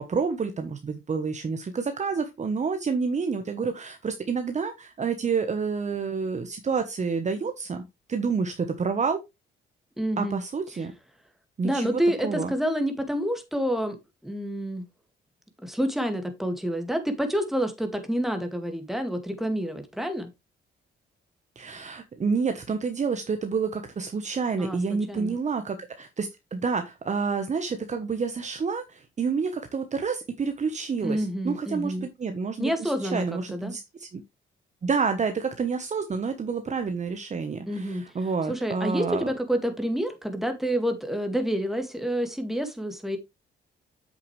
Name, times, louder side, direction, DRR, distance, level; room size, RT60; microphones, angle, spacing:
voice 1, 0.0-7.8 8.1-9.2 10.2-10.9 11.6-12.5 21.6-34.2 34.8-39.3, right 5 dB, 35° right, 1.1 m, -29 dB
voice 2, 10.0-10.4 11.6-14.0 14.2-14.9 15.6-20.3 24.6-24.8 25.1-25.4 31.0-32.1 32.6-33.7 37.7-38.0 38.5-43.2, equal, ahead, 2.1 m, -28 dB
8.1 x 6.6 x 3.3 m
cardioid pair, 90°, 20 cm